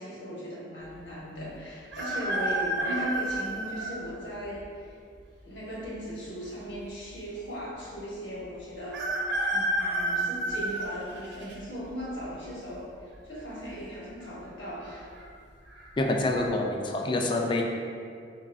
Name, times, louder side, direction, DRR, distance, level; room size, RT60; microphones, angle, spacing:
voice 1, 0.0-5.0 5.4-12.9 13.2-15.1, equal, 90° left, -6 dB, 1.3 m, -38 dB
sound 1, 1.9-3.9 4.6-4.7 5.8-6.4 6.7-6.8 7.0-7.1 8.9-11.5 12.1-12.5 13.6-14.0 14.2-14.3 14.8-15.2 15.7-15.9, right 1 dB, 85° right, 0.7 m, -30 dB
voice 2, 16.0-17.6, left 2 dB, 30° left, 2 dB, 0.3 m, -26 dB
4.4 x 4.0 x 2.6 m, 2.3 s
head